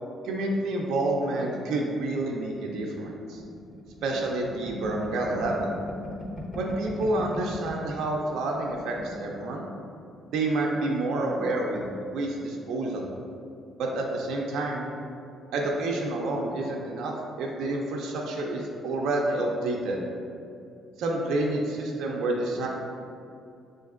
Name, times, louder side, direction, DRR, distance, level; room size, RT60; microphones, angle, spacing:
voice 1, 0.2-3.4 4.0-5.7 6.6-9.7 10.3-13.1 13.8-14.9 15.5-20.0 21.0-22.7, right 2 dB, 80° right, -1 dB, 0.5 m, -29 dB
sound 1, 3.4-7.9 8.3-8.4 8.6-9.2, left 1 dB, 45° left, 1.0 m, -38 dB
6.9 x 2.5 x 2.4 m, 2.6 s
cardioid pair, 100°, 0 cm